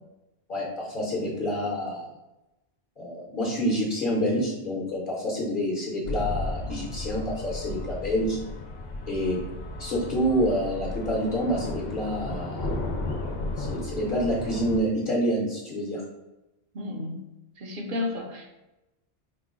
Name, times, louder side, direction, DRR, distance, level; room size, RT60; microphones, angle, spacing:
voice 1, 0.5-2.1 3.0-8.4 9.1-9.4 9.8-12.7 13.6-16.0, equal, 55° left, -5 dB, 1.0 m, -27 dB
sound 1, 6.1-14.8, left 2 dB, 75° left, 1.0 m, -34 dB
voice 2, 16.7-17.2 17.6-18.6, left 2 dB, 55° right, 2 dB, 0.8 m, -32 dB
5.1 x 2.0 x 3.6 m, 0.99 s
omnidirectional pair, 1.1 m